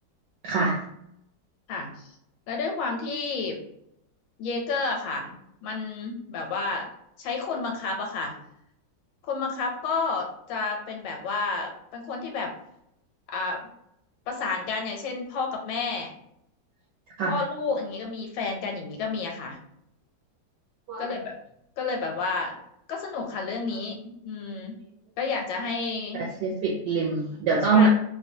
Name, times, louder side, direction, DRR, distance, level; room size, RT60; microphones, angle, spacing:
voice 1, 0.4-0.8 17.2-17.4 20.9-21.2 26.1-27.9, right 4 dB, 75° right, -4 dB, 1.1 m, -24 dB
voice 2, 1.7-2.1 2.5-3.6 4.4-5.3 5.6-6.9 7.2-8.3 9.3-12.5 13.3-13.6 14.3-16.1 17.2-19.6 21.0-21.3 21.8-22.6 22.9-24.0 24.2-24.7 25.2-26.2 27.7-27.9, left 4 dB, 85° left, 2 dB, 1.3 m, -30 dB
3.0 x 2.2 x 2.6 m, 0.76 s
omnidirectional pair, 2.1 m